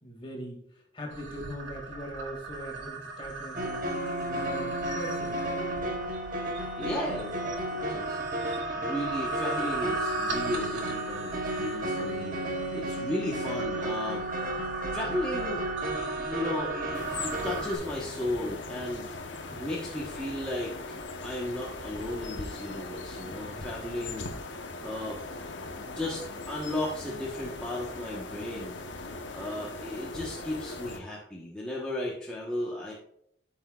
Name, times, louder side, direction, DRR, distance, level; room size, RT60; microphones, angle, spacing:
voice 1, 0.0-5.4 19.5-19.6 23.2-24.1, equal, 30° left, -1 dB, 2.2 m, -42 dB
sound 1, 1.1-17.8, right 3 dB, 75° right, 2.6 m, -37 dB
sound 2, 3.5-17.6, right 1 dB, 45° right, 1.1 m, -33 dB
voice 2, 6.8-7.4 7.7-14.2 14.9-15.6 15.9-19.1 19.6-20.7 21.2-24.3 24.8-25.2 25.8-28.8 29.3-32.9, left 1 dB, 5° left, -6 dB, 1.1 m, -35 dB
sound 3, 16.9-31.0, left 3 dB, 80° left, 1.0 m, -40 dB
14.0 x 5.8 x 2.4 m, 0.69 s
head